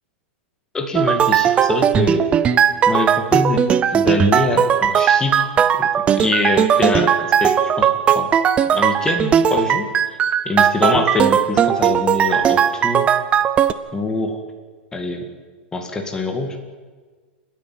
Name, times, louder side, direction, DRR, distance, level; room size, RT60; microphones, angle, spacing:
voice 1, 0.7-2.3 2.9-3.6 3.9-5.5 5.8-8.3 8.7-9.9 10.5-13.1 13.9-14.4 14.9-15.3 15.7-16.7, left 3 dB, 10° left, 4 dB, 2.1 m, -24 dB
sound 1, 0.9-13.7, right 8 dB, 20° right, 0.6 m, -17 dB
28.5 x 10.5 x 9.2 m, 1.5 s
supercardioid pair, 155°, 6 cm